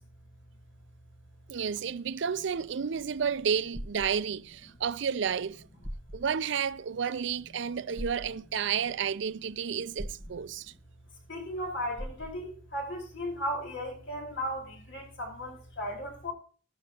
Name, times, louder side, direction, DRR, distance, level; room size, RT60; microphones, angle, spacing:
voice 1, 1.5-5.6 6.1-10.7, right 7 dB, 65° right, 0.5 m, -31 dB
sound 1, 3.5-4.1 5.4-5.5 5.8-6.2 7.9-8.3 10.0-10.3 12.0-12.3, equal, 15° left, 1.2 m, -39 dB
voice 2, 11.3-16.3, equal, 65° left, 4.6 m, -36 dB
12.5 x 12.0 x 2.9 m
head